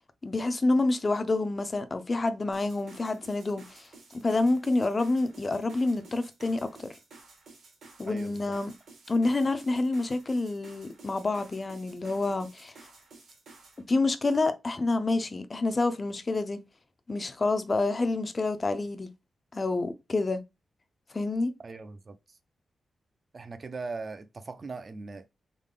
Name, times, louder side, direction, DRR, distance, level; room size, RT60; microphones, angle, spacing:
voice 1, 0.2-3.9 4.1-6.9 8.0-8.7 9.1-12.7 13.9-16.6 17.1-19.1 19.5-20.4 21.1-21.5, left 2 dB, 25° left, 0.5 m, -28 dB
sound 1, 2.5-13.8, right 3 dB, 75° right, 1.6 m, -53 dB
voice 2, 8.1-8.6 21.6-22.2 23.3-25.3, right 3 dB, 35° right, 0.4 m, -40 dB
3.8 x 3.5 x 3.7 m
wide cardioid pair, 170°, 0 cm